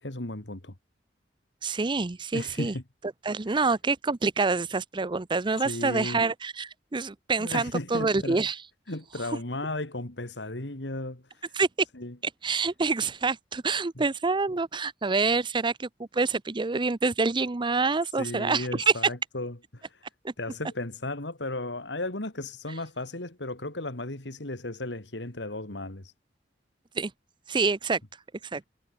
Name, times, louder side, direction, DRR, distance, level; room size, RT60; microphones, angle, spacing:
voice 1, 0.0-0.7 2.3-2.8 3.5-3.6 5.6-6.2 7.4-8.4 8.9-11.2 11.9-12.1 14.0-14.1 18.2-20.0 20.4-26.1, left 2 dB, 70° left, 2.8 m, -35 dB
voice 2, 1.6-2.8 3.2-8.6 11.5-11.7 12.4-18.9 20.2-20.3 27.0-27.1 27.5-28.0 28.5-28.6, right 4 dB, 25° right, 0.6 m, -27 dB
head